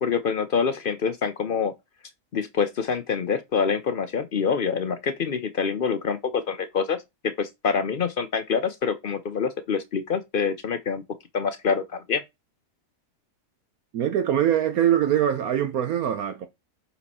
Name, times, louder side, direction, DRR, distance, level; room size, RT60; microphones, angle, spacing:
voice 1, 0.0-1.7 2.3-11.0 11.3-12.2, left 6 dB, 60° left, 0.5 m, -26 dB
voice 2, 13.9-16.5, right 10 dB, 70° right, 1.1 m, -23 dB
7.1 x 4.2 x 4.2 m
omnidirectional pair, 1.7 m